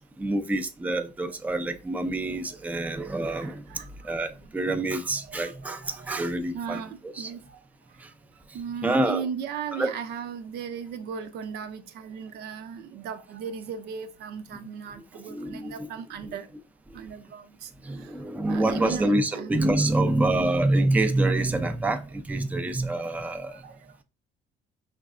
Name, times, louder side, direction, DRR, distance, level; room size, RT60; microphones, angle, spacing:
voice 1, 0.2-3.6 4.0-6.8 7.2-7.3 8.0-8.1 8.8-9.2 9.7-9.9 15.2-15.9 17.8-23.6, right 2 dB, 10° right, 0.5 m, -26 dB
voice 2, 3.3-4.1 4.4-4.5 5.3-5.4 5.6-6.1 6.5-7.6 8.5-16.5 16.9-17.7 18.0-18.1 18.5-19.6 23.2-24.0, right 7 dB, 75° right, 0.6 m, -37 dB
5.1 x 3.2 x 2.4 m
cardioid pair, 110°, 17 cm